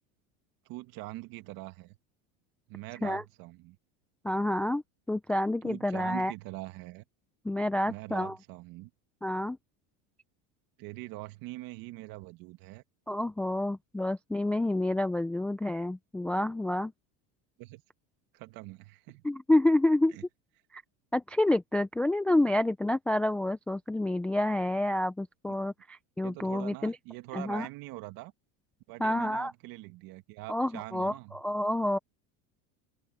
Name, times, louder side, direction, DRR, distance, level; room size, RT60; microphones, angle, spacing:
voice 1, 0.7-2.0 2.7-3.8 5.6-7.0 7.9-8.9 10.8-12.8 17.6-17.8 18.3-19.2 20.1-20.2 26.2-28.3 28.9-31.4, right 19 dB, 55° right, 1.9 m, -43 dB
voice 2, 4.2-4.8 5.1-6.3 7.4-8.4 9.2-9.6 13.1-16.9 19.2-20.2 20.7-20.8 21.1-27.0 27.3-27.7 29.0-29.5 30.5-32.0, left 1 dB, 5° left, 0.3 m, -28 dB
open air
supercardioid pair, 140°, 41 cm